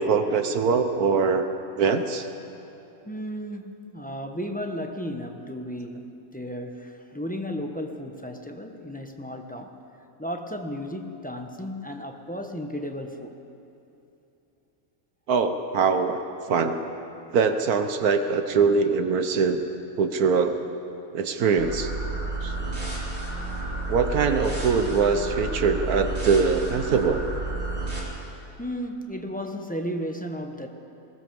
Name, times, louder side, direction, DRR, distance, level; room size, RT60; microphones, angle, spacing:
voice 1, 0.0-1.5 1.7-2.3 15.3-16.2 16.5-16.8 17.3-19.6 20.0-20.6 21.1-21.9 22.4-22.5 23.9-27.3, right 5 dB, 80° right, 8 dB, 1.5 m, -22 dB
voice 2, 3.0-9.8 10.2-13.3 28.6-30.7, equal, 5° left, 4 dB, 1.1 m, -34 dB
sound 1, 21.6-28.0, right 2 dB, 40° right, 4.1 m, -31 dB
21.5 x 19.0 x 7.1 m, 2.8 s
omnidirectional pair, 1.6 m